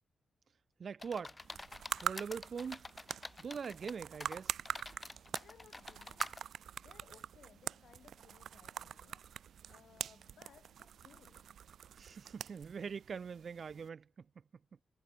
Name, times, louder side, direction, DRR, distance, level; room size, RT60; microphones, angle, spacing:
voice 1, 0.8-1.4 2.0-2.8 3.4-4.6 12.0-14.1, right 6 dB, 45° right, 1.5 m, -42 dB
sound 1, 1.0-3.9 4.2-6.4, left 2 dB, 20° left, 1.6 m, -48 dB
sound 2, 1.4-13.9, right 9 dB, 80° right, 2.4 m, -44 dB
voice 2, 5.3-11.5, left 8 dB, 65° left, 7.2 m, -63 dB
wide cardioid pair, 160°, 0 cm